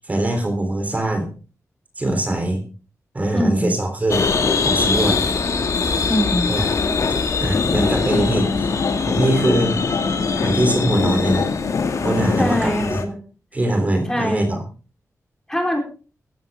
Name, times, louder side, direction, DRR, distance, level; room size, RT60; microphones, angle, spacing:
voice 1, 0.1-1.3 2.0-2.6 3.1-4.2 4.6-5.2 6.5-6.7 7.4-8.7 9.0-9.7 10.3-11.5 12.0-13.0 13.5-14.6, right 1 dB, 25° right, 5 dB, 3.5 m, -22 dB
voice 2, 3.3-3.7 6.0-6.5 12.4-13.1 14.1-14.5 15.5-15.8, equal, 10° left, 2 dB, 4.0 m, -22 dB
sound 1, 4.1-13.0, left 4 dB, 60° left, 2.0 m, -23 dB
sound 2, 7.5-12.6, left 4 dB, 80° left, 2.3 m, -23 dB
16.0 x 14.0 x 3.6 m, 0.36 s
wide cardioid pair, 170°, 6 cm